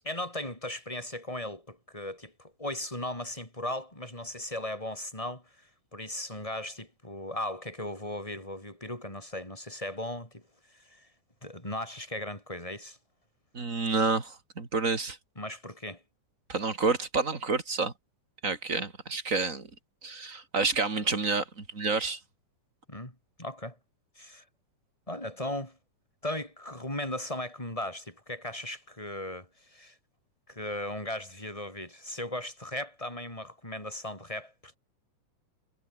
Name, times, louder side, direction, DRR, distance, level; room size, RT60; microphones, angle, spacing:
voice 1, 0.0-10.4 10.7-11.1 11.4-13.0 15.4-16.0 22.9-23.8 24.2-24.4 25.1-25.8 26.2-30.0 30.5-34.8, left 1 dB, 10° left, 7.9 m, -37 dB
voice 2, 13.5-15.2 16.5-17.9 18.4-19.7 20.0-22.2, right 4 dB, 25° right, 3.3 m, -29 dB
omnidirectional pair, 3.7 m